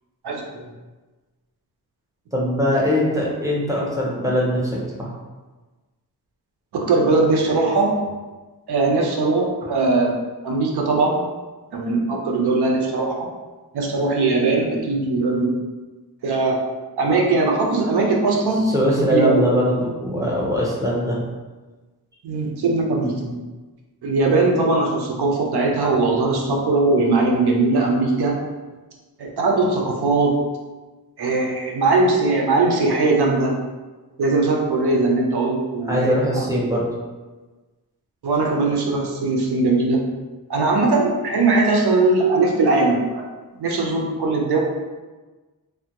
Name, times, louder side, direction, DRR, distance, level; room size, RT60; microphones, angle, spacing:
voice 1, 0.2-0.7 6.7-8.0 8.7-10.2 10.4-11.2 11.7-13.3 13.7-15.6 16.2-16.6 17.0-18.7 19.1-19.4 22.2-23.4 24.0-28.4 29.2-30.4 31.2-33.5 34.2-36.5 38.2-40.1 40.5-43.2 43.6-44.6, right 3 dB, 85° right, 0 dB, 0.6 m, -20 dB
voice 2, 2.3-5.1 18.6-21.2 35.9-36.8, equal, 10° right, -4 dB, 0.5 m, -21 dB
3.4 x 2.1 x 2.8 m, 1.3 s
wide cardioid pair, 170°, 38 cm